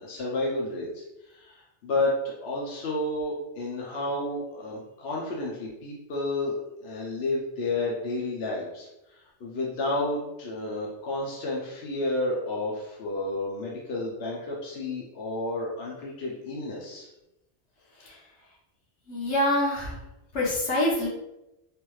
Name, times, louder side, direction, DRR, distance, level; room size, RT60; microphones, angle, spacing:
voice 1, 0.0-6.6 6.8-17.1, left 2 dB, 70° left, -3 dB, 0.9 m, -31 dB
voice 2, 19.1-19.9 20.3-21.1, left 1 dB, 85° left, -4 dB, 1.3 m, -25 dB
3.3 x 2.6 x 3.1 m, 0.93 s
omnidirectional pair, 1.1 m